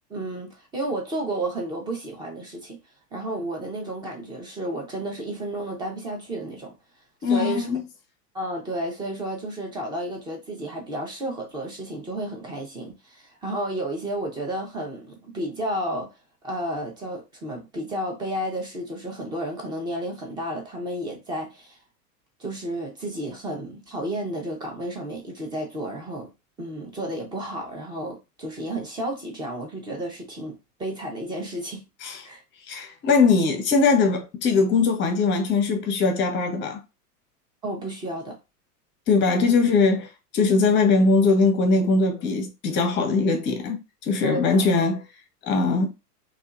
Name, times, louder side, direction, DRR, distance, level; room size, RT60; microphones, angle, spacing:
voice 1, 0.1-2.8 3.1-6.7 7.2-7.7 8.3-16.1 16.4-21.8 22.4-26.3 26.6-31.8 32.2-32.4 37.6-38.4 44.2-44.9, right 1 dB, 10° right, 0.4 m, -32 dB
voice 2, 7.2-7.8 32.0-32.2 32.7-36.8 39.1-40.1 40.3-43.8 44.1-45.0 45.4-45.9, left 4 dB, 25° left, 0.6 m, -21 dB
2.7 x 2.3 x 2.3 m
hypercardioid pair, 105°, 48 cm